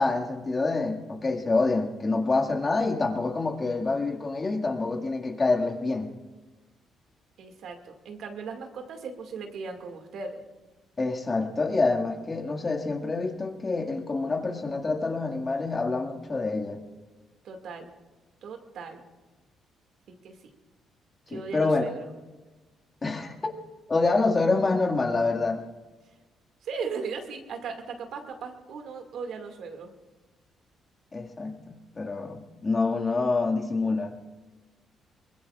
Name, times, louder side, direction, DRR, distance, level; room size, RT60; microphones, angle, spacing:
voice 1, 0.0-6.1 11.0-16.8 21.3-21.8 23.0-23.5 23.9-25.6 31.1-34.1, left 3 dB, 30° left, 2 dB, 2.0 m, -27 dB
voice 2, 7.4-10.4 17.4-17.9 18.4-19.1 20.1-20.4 21.3-22.1 26.6-29.9, right 5 dB, 75° right, 4 dB, 2.1 m, -37 dB
23.5 x 21.0 x 2.5 m, 1.2 s
cardioid pair, 90°, 0 cm